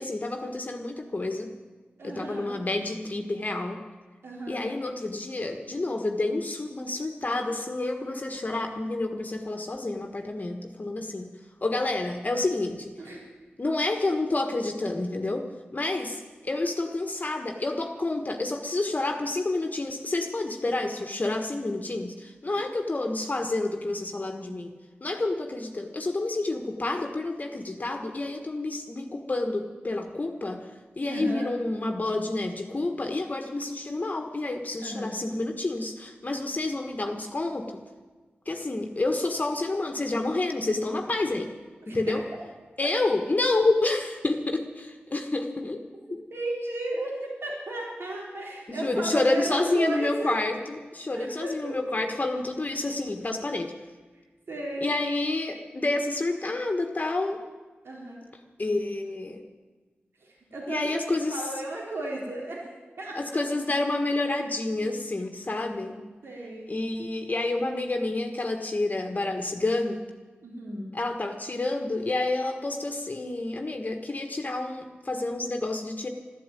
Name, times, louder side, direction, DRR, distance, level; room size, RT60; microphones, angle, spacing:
voice 1, 0.0-1.5 2.0-3.8 4.5-11.3 11.6-12.9 13.6-24.7 25.0-30.7 31.0-37.8 38.5-41.5 41.9-42.2 42.8-45.8 46.1-46.2 48.7-53.7 54.8-57.4 58.6-59.4 60.7-61.5 63.1-66.0 66.7-70.1 70.9-76.1, left 2 dB, 40° left, 4 dB, 1.4 m, -29 dB
voice 2, 2.0-2.6 4.2-4.7 13.0-13.2 31.1-31.5 34.8-35.1 41.8-42.1 46.1-50.4 51.1-51.8 54.5-54.9 57.8-58.2 60.2-61.0 61.3-62.6 63.0-63.5 66.2-66.7 70.4-70.9, right 2 dB, 75° right, -3 dB, 3.9 m, -34 dB
12.5 x 12.0 x 9.1 m, 1.3 s
cardioid pair, 55°, 4 cm